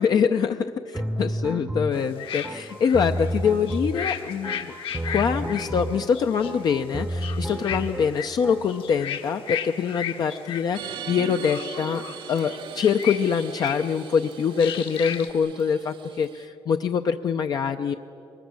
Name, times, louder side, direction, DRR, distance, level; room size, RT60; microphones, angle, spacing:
voice 1, 0.0-4.7 5.1-17.9, left 6 dB, 45° left, 7 dB, 0.6 m, -24 dB
sound 1, 0.9-8.9, right 1 dB, 10° right, 0.8 m, -31 dB
sound 2, 1.9-8.3 8.6-10.7 11.2-14.0 14.5-15.3, left 9 dB, 65° left, 1.7 m, -35 dB
sound 3, 10.7-16.4, right 10 dB, 60° right, 0.7 m, -40 dB
23.0 x 20.0 x 9.6 m, 2.7 s
cardioid pair, 180°, 10 cm